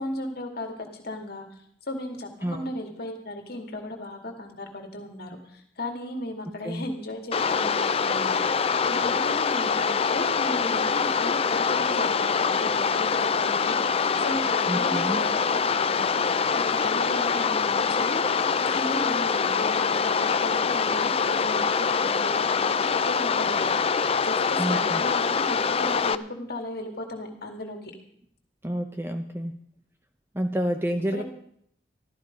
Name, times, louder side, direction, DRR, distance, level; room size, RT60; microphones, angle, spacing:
voice 1, 0.0-1.5 1.9-16.1 16.7-18.3 18.6-22.8 23.0-23.7 24.2-27.8 31.1-31.2, left 1 dB, 55° left, 3 dB, 2.2 m, -35 dB
sound 1, 7.3-26.2, left 5 dB, 30° left, 0.5 m, -24 dB
voice 2, 14.7-15.2 24.6-25.0 28.6-29.5 30.3-31.2, equal, 10° right, 6 dB, 0.7 m, -29 dB
14.0 x 13.0 x 5.2 m, 0.69 s
head